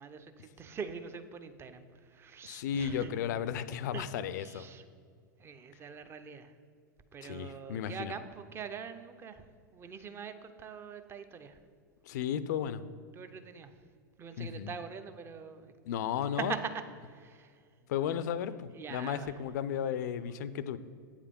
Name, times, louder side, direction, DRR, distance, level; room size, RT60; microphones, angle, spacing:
voice 1, 0.0-3.4 3.8-4.1 4.3-4.9 5.4-6.6 7.1-11.6 13.1-13.9 14.2-15.7 16.3-17.9 18.7-19.4, right 6 dB, 20° right, 9 dB, 0.6 m, -43 dB
voice 2, 2.4-4.6 7.2-8.1 12.1-12.8 14.4-14.7 15.9-16.5 17.9-20.8, left 9 dB, 55° left, 15 dB, 0.4 m, -34 dB
8.4 x 4.9 x 5.3 m, 2.1 s
figure-of-eight pair, 95°, 11 cm